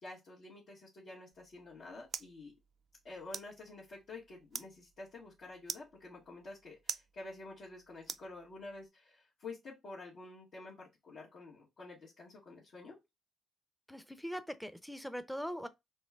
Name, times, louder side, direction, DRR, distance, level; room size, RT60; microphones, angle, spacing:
voice 1, 0.0-2.5 3.0-13.0, left 2 dB, 60° left, 1.9 m, -49 dB
sound 1, 1.3-8.9, right 7 dB, 50° right, 0.3 m, -48 dB
voice 2, 13.9-15.7, equal, ahead, 0.6 m, -41 dB
4.2 x 3.2 x 3.6 m
cardioid pair, 90°, 0 cm